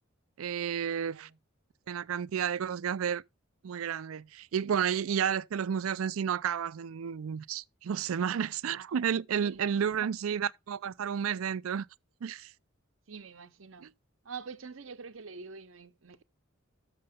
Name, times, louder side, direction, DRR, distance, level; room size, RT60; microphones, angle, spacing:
voice 1, 0.4-1.3 1.9-3.2 3.6-11.9 12.2-12.5 13.8-13.9, right 8 dB, 90° right, 0.4 m, -31 dB
voice 2, 0.9-1.4 9.4-10.1 13.1-13.9 14.2-16.2, right 5 dB, 70° right, 0.8 m, -45 dB
6.7 x 6.6 x 5.1 m
head